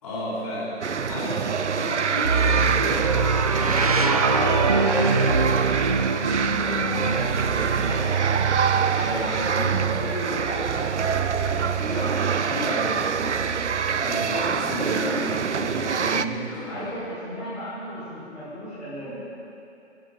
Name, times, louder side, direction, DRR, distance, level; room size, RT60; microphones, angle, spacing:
voice 1, 0.0-3.1 3.5-5.5 5.8-8.3 8.9-11.4 11.7-13.0 14.0-16.9, left 1 dB, 30° left, -7 dB, 3.2 m, -33 dB
sound 1, 0.8-16.3, right 6 dB, 75° right, 0.6 m, -25 dB
sound 2, 2.2-12.1 13.1-14.1, right 3 dB, 35° right, 0.4 m, -26 dB
voice 2, 14.2-14.5 16.4-19.3, equal, ahead, -15 dB, 3.4 m, -36 dB
29.5 x 10.0 x 2.5 m, 2.8 s
figure-of-eight pair, 140°, 36 cm